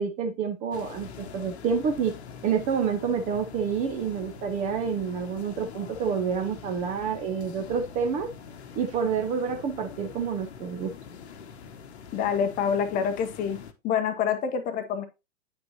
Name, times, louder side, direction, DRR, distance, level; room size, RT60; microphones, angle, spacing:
voice 1, 0.0-2.2 2.4-8.3 8.8-10.9, right 6 dB, 20° right, 6 dB, 0.6 m, -28 dB
sound 1, 0.7-13.7, left 7 dB, 55° left, 1.1 m, -44 dB
voice 2, 12.1-13.6 13.8-15.1, left 7 dB, 20° left, 9 dB, 0.8 m, -26 dB
9.3 x 5.2 x 2.8 m, 0.25 s
figure-of-eight pair, 110°, 39 cm